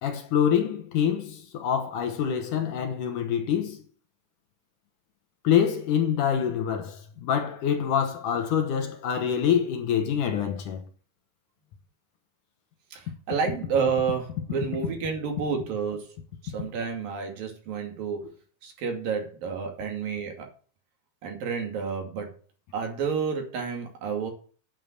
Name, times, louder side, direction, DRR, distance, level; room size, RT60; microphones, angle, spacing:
voice 1, 0.0-3.8 5.4-10.8, left 8 dB, 65° left, 2.4 m, -26 dB
voice 2, 12.9-16.1 16.4-18.3 18.6-20.5 21.2-22.3 22.7-24.3, right 6 dB, 65° right, 4.2 m, -30 dB
9.1 x 7.4 x 8.0 m
omnidirectional pair, 4.4 m